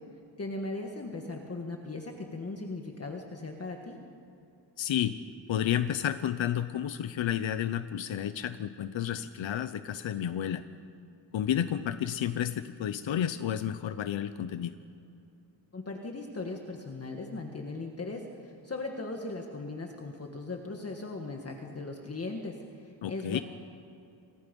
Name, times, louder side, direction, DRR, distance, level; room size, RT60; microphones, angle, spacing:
voice 1, 0.4-4.0 15.7-23.4, left 2 dB, 30° left, 2 dB, 1.7 m, -38 dB
voice 2, 4.8-5.1 5.5-10.6 11.3-14.7 23.0-23.4, left 10 dB, 80° left, 11 dB, 0.9 m, -31 dB
29.0 x 25.5 x 5.4 m, 2.7 s
wide cardioid pair, 155°, 45 cm